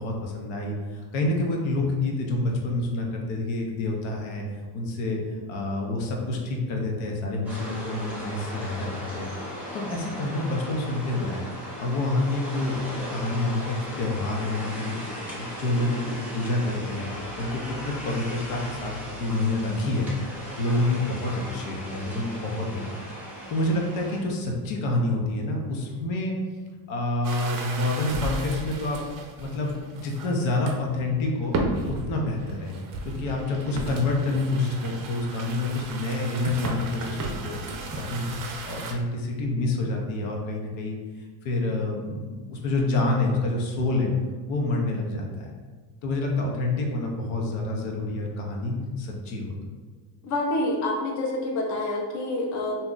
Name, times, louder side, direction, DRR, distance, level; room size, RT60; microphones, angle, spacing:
voice 1, 0.0-4.4 4.7-9.3 9.7-11.5 11.8-17.1 17.4-20.1 20.6-22.9 23.5-26.3 26.9-29.0 29.4-31.5 32.0-32.7 33.0-37.6 37.9-44.1 44.5-45.5 46.0-49.5, left 2 dB, 85° left, 0 dB, 0.8 m, -28 dB
sound 1, 7.5-24.2, equal, 5° right, 0.6 m, -37 dB
sound 2, 27.2-30.3 30.7-31.0 31.4-38.9, right 2 dB, 45° right, 0.4 m, -34 dB
voice 2, 50.2-52.8, left 2 dB, 40° left, -1 dB, 0.5 m, -27 dB
2.7 x 2.2 x 3.7 m, 1.4 s
cardioid pair, 145°, 46 cm